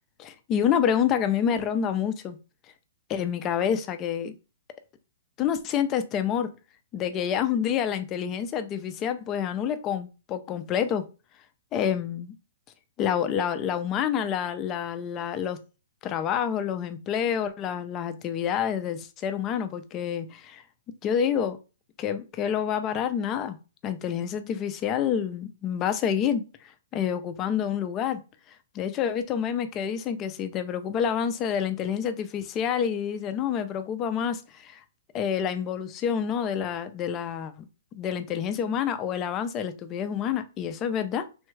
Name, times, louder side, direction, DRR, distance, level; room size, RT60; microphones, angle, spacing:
voice 1, 0.2-2.4 3.1-4.3 5.4-6.5 6.9-11.1 11.7-12.3 13.0-15.6 16.0-20.6 21.0-21.6 22.0-23.6 23.8-28.2 28.7-34.8 35.1-37.6 38.0-41.2, left 8 dB, 25° left, 0.4 m, -28 dB
3.4 x 2.3 x 3.1 m
hypercardioid pair, 155°, 0 cm